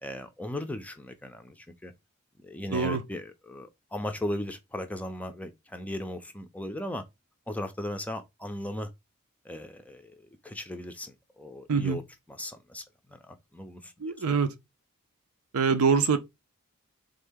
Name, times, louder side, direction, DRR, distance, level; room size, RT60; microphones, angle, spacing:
voice 1, 0.0-1.9 2.4-7.0 7.5-8.9 9.4-12.0 12.3-14.4, left 1 dB, 5° left, 0.4 m, -37 dB
voice 2, 2.7-3.0 11.7-12.0 14.0-14.5 15.5-16.2, right 5 dB, 90° right, 0.6 m, -24 dB
3.7 x 2.7 x 3.4 m
head